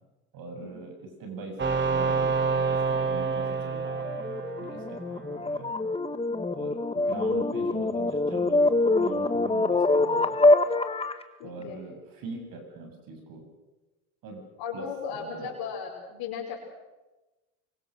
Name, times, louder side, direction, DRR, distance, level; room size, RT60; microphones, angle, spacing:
voice 1, 0.3-5.7 6.5-10.4 11.4-13.4 14.2-14.4 14.7-15.5, right 3 dB, 55° right, 4 dB, 7.5 m, -42 dB
sound 1, 1.6-5.3, right 4 dB, 25° right, 3.3 m, -28 dB
sound 2, 3.9-11.2, left 2 dB, 15° left, 1.8 m, -25 dB
voice 2, 11.4-11.8 14.6-16.7, left 7 dB, 60° left, -3 dB, 5.4 m, -36 dB
25.0 x 23.5 x 6.5 m, 1.1 s
hypercardioid pair, 75°, 41 cm